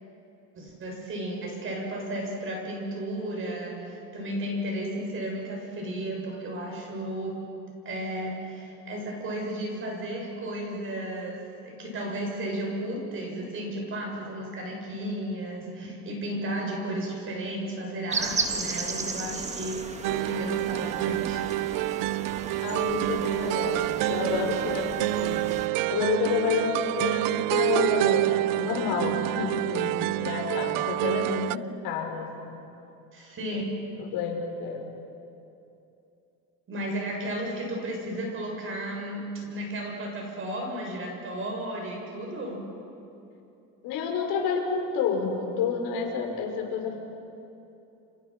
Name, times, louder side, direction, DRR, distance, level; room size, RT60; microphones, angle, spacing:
voice 1, 0.6-7.6 7.9-21.5 33.1-33.6 36.7-42.6 46.8-46.9, right 1 dB, 35° right, 0 dB, 7.1 m, -34 dB
sound 1, 18.1-25.7, right 4 dB, 20° right, 1.5 m, -35 dB
sound 2, 20.0-31.6, right 19 dB, 65° right, 0.5 m, -27 dB
voice 2, 22.6-25.4 25.9-32.6 33.5-33.6 34.0-35.0 43.8-47.0, left 6 dB, 85° left, 2 dB, 5.2 m, -30 dB
29.5 x 29.5 x 6.0 m, 2.8 s
cardioid pair, 160°, 36 cm